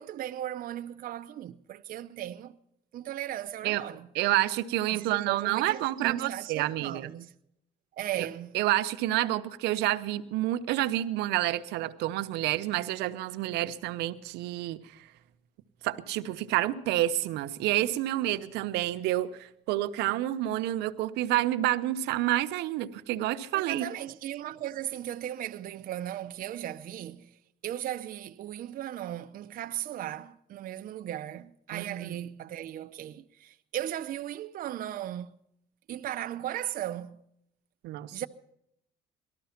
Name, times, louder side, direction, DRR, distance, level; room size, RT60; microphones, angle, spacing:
voice 1, 0.0-2.6 2.9-4.1 4.9-7.3 8.0-8.6 23.5-27.4 27.6-35.4 35.9-37.2 38.1-38.3, right 12 dB, 55° right, 0.7 m, -37 dB
voice 2, 4.1-7.1 8.5-15.1 15.8-23.9 31.7-32.2 37.8-38.2, right 15 dB, 90° right, 0.8 m, -29 dB
18.5 x 13.0 x 5.8 m
cardioid pair, 110°, 17 cm